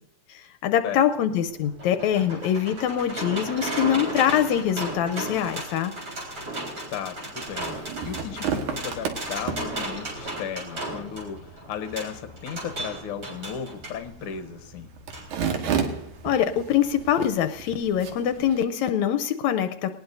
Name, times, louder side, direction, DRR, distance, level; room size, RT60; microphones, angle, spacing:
voice 1, 0.3-5.9 16.2-20.0, left 9 dB, 80° left, 8 dB, 1.9 m, -24 dB
sound 1, 1.4-14.0 15.1-15.3 15.6-15.7, right 1 dB, 40° right, 4.9 m, -35 dB
voice 2, 6.9-7.7 8.0-14.9, left 8 dB, 60° left, 6 dB, 1.6 m, -35 dB
sound 2, 7.4-18.6, right 6 dB, 90° right, 3.0 m, -34 dB
20.0 x 19.0 x 2.7 m, 0.81 s
omnidirectional pair, 3.4 m